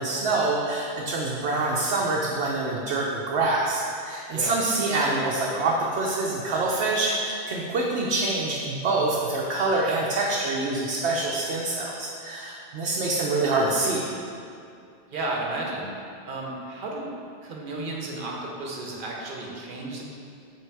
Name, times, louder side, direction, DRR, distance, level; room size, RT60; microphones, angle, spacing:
voice 1, 0.0-14.1, right 2 dB, 75° right, -3 dB, 0.9 m, -26 dB
voice 2, 15.1-15.9 16.2-17.1 17.4-20.0, right 2 dB, 50° right, -2 dB, 1.1 m, -33 dB
7.8 x 3.4 x 4.6 m, 2.4 s
omnidirectional pair, 1.1 m